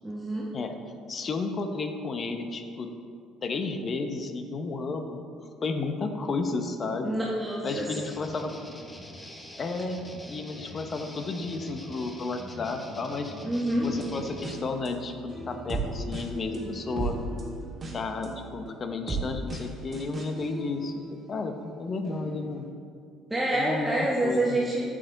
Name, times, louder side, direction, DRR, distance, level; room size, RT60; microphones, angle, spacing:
voice 1, 0.0-0.5 7.0-7.9 13.4-13.9 23.3-24.8, right 1 dB, 10° right, -6 dB, 1.4 m, -27 dB
voice 2, 1.1-2.9 3.4-5.2 5.6-7.2 7.6-8.5 9.6-10.0 10.3-13.3 13.8-17.2 17.9-22.6 23.5-24.6, left 3 dB, 40° left, 6 dB, 0.9 m, -32 dB
sound 1, 7.7-14.5, left 1 dB, 15° left, 1.1 m, -44 dB
sound 2, 13.8-21.5 22.0-22.6, right 2 dB, 35° right, 2.0 m, -37 dB
8.5 x 7.6 x 3.9 m, 2.3 s
supercardioid pair, 75°, 0 cm